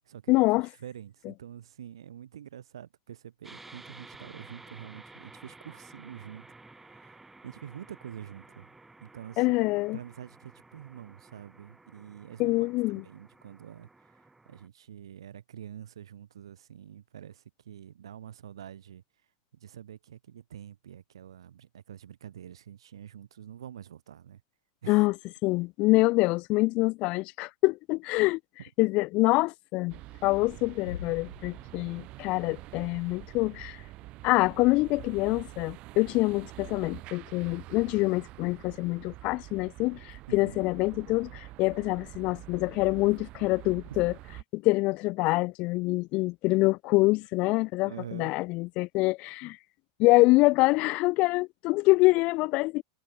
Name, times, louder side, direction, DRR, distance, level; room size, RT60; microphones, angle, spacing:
voice 1, 0.3-0.7 9.4-10.0 12.4-13.0 24.9-25.1 25.4-28.4 28.8-33.8 34.2-44.1 44.5-49.6 50.0-52.8, left 22 dB, 45° left, 0.8 m, -25 dB
voice 2, 0.8-6.5 6.8-8.7 9.0-9.5 9.9-12.7 13.0-19.0 19.5-24.4 24.8-25.0 40.3-40.7 43.9-44.0 47.9-48.3, right 10 dB, 90° right, 1.9 m, -46 dB
sound 1, 3.4-14.7, right 2 dB, 10° right, 1.6 m, -53 dB
sound 2, 29.9-44.4, right 19 dB, 45° right, 1.3 m, -46 dB
sound 3, 30.9-32.3, left 10 dB, 90° left, 1.0 m, -43 dB
hypercardioid pair, 120°, 3 cm